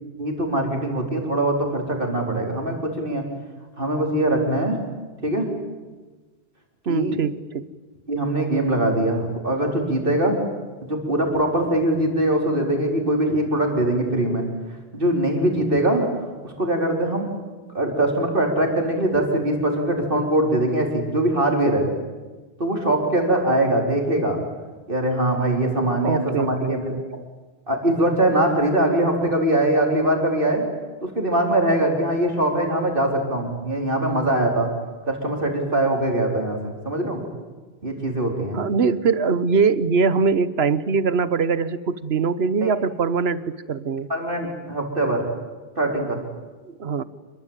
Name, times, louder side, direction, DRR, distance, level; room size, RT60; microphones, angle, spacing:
voice 1, 0.2-3.2 3.8-4.8 5.2-5.5 6.9-7.2 8.1-10.4 10.8-14.5 14.9-16.1 16.4-17.3 17.7-21.9 22.6-24.4 24.9-26.9 27.7-30.6 31.0-34.7 35.1-37.2 37.8-38.6 42.6-42.7 44.1-45.2 45.8-46.2, right 1 dB, 60° right, 2 dB, 4.7 m, -22 dB
voice 2, 6.9-7.6 26.0-27.3 38.5-44.1 46.7-47.0, right 5 dB, 80° right, 16 dB, 1.3 m, -22 dB
27.0 x 22.5 x 9.0 m, 1.3 s
omnidirectional pair, 1.0 m